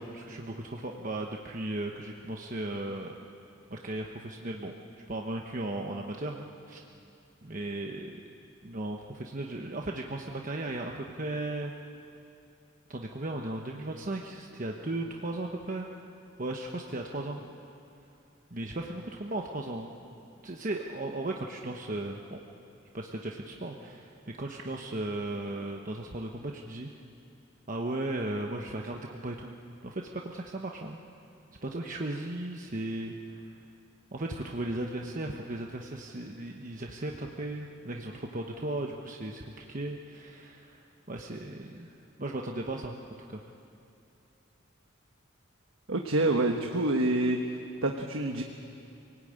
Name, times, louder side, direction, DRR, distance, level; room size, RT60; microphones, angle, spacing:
voice 1, 0.2-3.2 3.7-4.7 5.1-6.8 7.4-8.2 8.6-11.7 12.9-15.9 16.4-17.4 18.5-19.9 20.4-22.4 22.9-26.9 27.7-29.5 29.8-31.0 31.6-33.4 34.1-41.9 42.2-43.0 43.3-43.4, right 2 dB, 40° right, 1 dB, 1.1 m, -36 dB
voice 2, 45.9-47.4 47.8-48.4, right 2 dB, 80° right, 3 dB, 1.3 m, -27 dB
26.0 x 18.5 x 8.9 m, 2.7 s
head